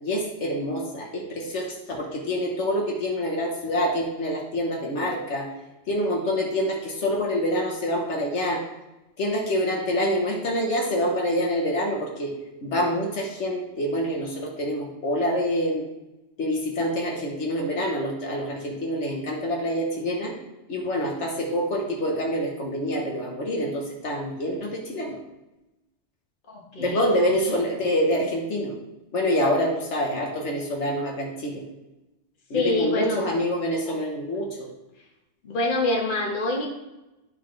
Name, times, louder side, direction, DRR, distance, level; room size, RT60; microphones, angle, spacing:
voice 1, 0.0-5.5 5.9-8.6 9.2-12.3 12.6-15.8 16.4-20.3 20.7-25.2 26.8-28.7 29.1-31.7 32.5-34.7, equal, 75° left, -1 dB, 1.4 m, -26 dB
voice 2, 26.5-27.6 32.5-33.3 35.4-36.7, left 2 dB, 45° left, -1 dB, 1.5 m, -26 dB
12.0 x 4.1 x 3.2 m, 0.99 s
omnidirectional pair, 1.2 m